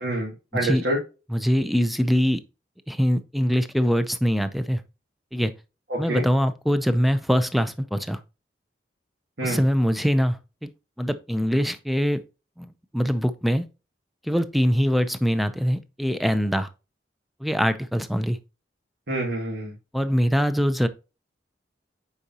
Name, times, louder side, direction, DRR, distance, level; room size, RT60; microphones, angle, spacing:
voice 1, 0.0-1.0 5.9-6.2 9.4-9.6 19.1-19.7, right 1 dB, 75° right, 2.3 m, -27 dB
voice 2, 1.3-2.4 2.9-4.8 5.3-5.5 6.0-8.2 9.4-10.7 11.0-12.2 12.6-12.7 12.9-13.6 14.3-16.7 17.4-18.4 19.9-20.9, equal, ahead, 0.5 m, -23 dB
8.2 x 4.9 x 2.8 m
head